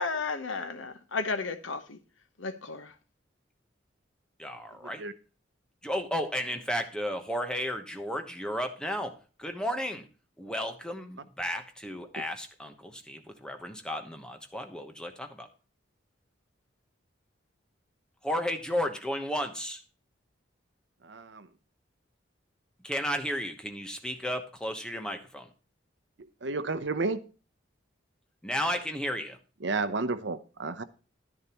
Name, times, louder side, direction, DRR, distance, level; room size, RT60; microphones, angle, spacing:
voice 1, 0.0-2.0 2.4-2.9, left 4 dB, 80° left, 1.0 m, -33 dB
voice 2, 4.4-5.0 5.8-10.1 10.4-15.5 18.2-19.8 22.8-25.5 28.4-29.4, equal, 5° left, 1.0 m, -33 dB
voice 3, 21.0-21.5 26.4-27.2 29.6-30.8, right 3 dB, 65° right, 0.8 m, -31 dB
11.0 x 10.5 x 3.0 m
head